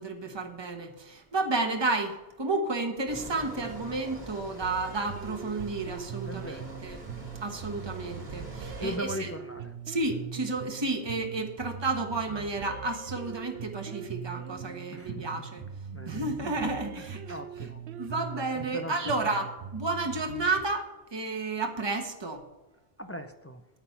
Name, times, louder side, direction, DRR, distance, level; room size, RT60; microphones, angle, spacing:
voice 1, 0.0-7.0 7.4-9.3 9.9-15.7 16.1-17.7 18.0-19.5 19.7-22.4, right 2 dB, 25° right, 4 dB, 1.2 m, -32 dB
sound 1, 3.1-9.0, right 2 dB, 45° right, 2.2 m, -44 dB
sound 2, 4.6-20.6, right 7 dB, 70° right, 0.9 m, -41 dB
voice 2, 6.3-6.8 8.8-9.7 14.9-15.2 15.9-16.3 16.9-17.0 17.3-17.8 18.6-18.9 19.2-19.4 23.0-23.6, equal, 15° left, 7 dB, 0.5 m, -39 dB
9.7 x 8.5 x 5.7 m, 1.1 s
omnidirectional pair, 1.1 m